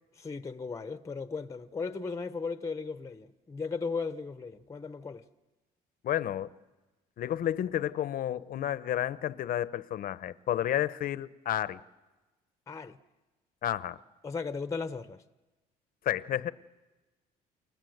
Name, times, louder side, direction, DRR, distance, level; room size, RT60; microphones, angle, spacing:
voice 1, 0.2-5.2 12.7-13.0 14.2-15.2, left 4 dB, 20° left, 1.0 m, -36 dB
voice 2, 6.0-6.5 7.2-11.8 13.6-14.0 16.0-16.5, left 11 dB, 55° left, 0.9 m, -31 dB
29.5 x 24.5 x 8.0 m
cardioid pair, 110°, 17 cm